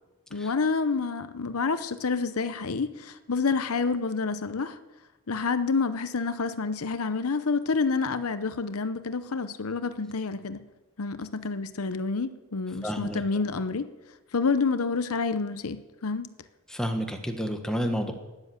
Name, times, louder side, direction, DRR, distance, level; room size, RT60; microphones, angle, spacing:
voice 1, 0.3-4.8 5.3-10.6 11.0-13.9 14.3-16.3, left 4 dB, 80° left, 0.8 m, -28 dB
voice 2, 12.8-13.2 16.7-18.1, equal, 5° left, 1.3 m, -30 dB
12.5 x 10.5 x 7.9 m
head